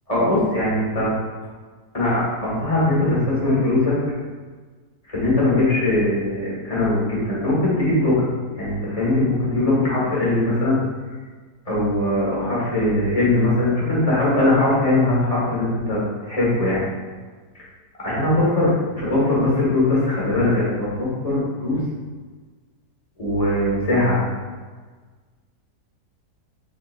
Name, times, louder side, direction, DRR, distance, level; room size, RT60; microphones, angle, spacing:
voice 1, 0.1-1.1 1.9-3.9 5.1-10.8 11.6-16.0 16.2-16.8 18.0-21.8 23.2-24.2, left 2 dB, 25° left, -8 dB, 1.2 m, -20 dB
3.8 x 3.6 x 2.4 m, 1.4 s
omnidirectional pair, 1.9 m